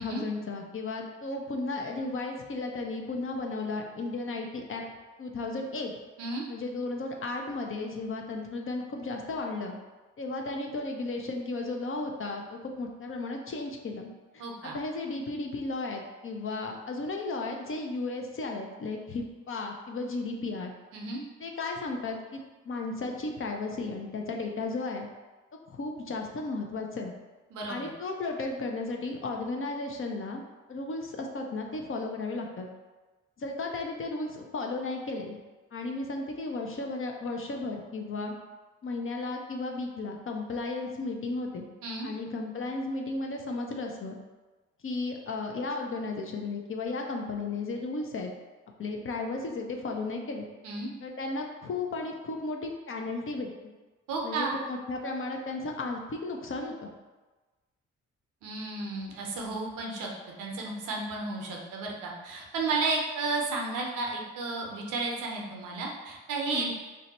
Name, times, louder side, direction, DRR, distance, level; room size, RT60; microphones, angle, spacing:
voice 1, 0.0-4.8 5.2-5.9 6.5-9.8 10.2-20.7 21.4-25.1 25.7-27.1 27.7-30.4 30.7-32.7 33.4-35.4 35.7-38.3 38.8-41.7 42.0-44.2 44.8-48.3 48.8-50.5 51.0-53.7 54.2-56.9 66.5-66.7, left 3 dB, 40° left, 2 dB, 0.6 m, -34 dB
voice 2, 14.4-14.8 20.9-21.2 27.5-27.8 41.8-42.1 50.6-50.9 54.1-54.6 58.4-60.1 60.4-66.7, right 3 dB, 75° right, -1 dB, 0.7 m, -33 dB
2.7 x 2.1 x 4.1 m, 1.2 s
hypercardioid pair, 50°, 32 cm